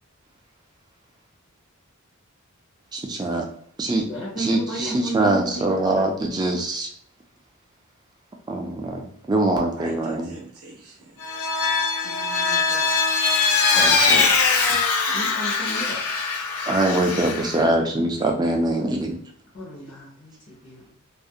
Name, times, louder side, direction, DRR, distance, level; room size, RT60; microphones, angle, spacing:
voice 1, 2.9-3.5 3.8-4.0 4.4-6.9 8.5-10.3 13.7-14.3 14.7-14.8 16.7-19.2, right 2 dB, 20° right, 1 dB, 0.3 m, -23 dB
voice 2, 4.1-5.7 6.0-6.1 15.1-16.0 19.5-20.9, right 2 dB, 50° left, -7 dB, 0.8 m, -32 dB
voice 3, 9.8-11.2 12.0-13.0 15.1-15.9 16.6-17.0, right 2 dB, 80° right, -1 dB, 0.5 m, -43 dB
Vehicle, 11.2-17.6, left 4 dB, 80° left, 0.4 m, -22 dB
2.4 x 2.1 x 2.6 m, 0.64 s
head